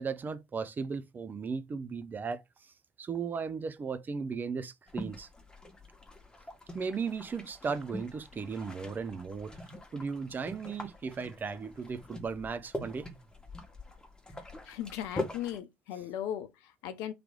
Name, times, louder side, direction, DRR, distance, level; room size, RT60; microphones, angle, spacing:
voice 1, 0.0-2.4 3.0-5.3 6.7-9.5 9.9-13.1, right 5 dB, 35° right, 0.6 m, -36 dB
sound 1, 4.9-15.6, left 1 dB, 15° left, 1.4 m, -44 dB
voice 2, 14.6-17.1, left 10 dB, 65° left, 0.6 m, -37 dB
3.3 x 3.0 x 3.8 m
figure-of-eight pair, 50°, 5 cm